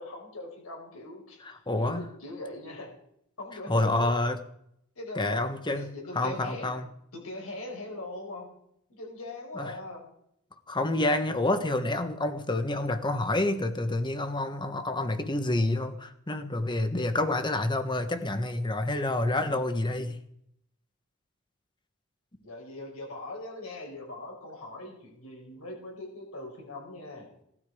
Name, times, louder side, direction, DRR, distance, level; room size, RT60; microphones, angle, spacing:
voice 1, 0.0-2.9 3.4-4.2 5.0-5.4 5.7-6.7 7.1-8.5 8.9-10.0 22.4-27.3, left 2 dB, 85° left, 0 dB, 5.3 m, -41 dB
voice 2, 1.7-2.1 3.7-4.4 5.2-5.9 6.1-6.9 9.6-9.7 10.7-20.2, left 2 dB, 20° left, 9 dB, 1.2 m, -28 dB
18.0 x 12.5 x 5.0 m, 0.74 s
head